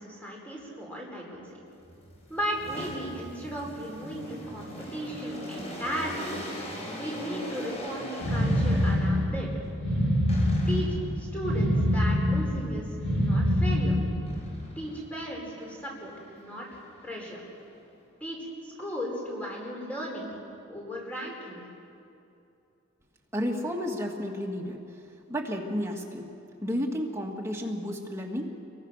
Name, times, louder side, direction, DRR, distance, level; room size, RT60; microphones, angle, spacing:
voice 1, 0.0-1.6 2.3-6.5 6.9-9.5 10.7-12.9 13.2-14.0 14.8-16.7 17.0-17.4 18.2-20.3 20.7-21.6, equal, 5° left, -2 dB, 4.6 m, -36 dB
sound 1, 1.8-9.4 10.3-11.1 14.3-15.1 15.5-17.9, left 1 dB, 30° left, 5.6 m, -41 dB
sound 2, 8.2-14.5, equal, 55° left, 6.2 m, -25 dB
voice 2, 23.3-25.0 25.3-26.3 26.6-28.5, equal, 15° right, 0 dB, 2.2 m, -32 dB
29.0 x 23.0 x 6.6 m, 2.7 s
head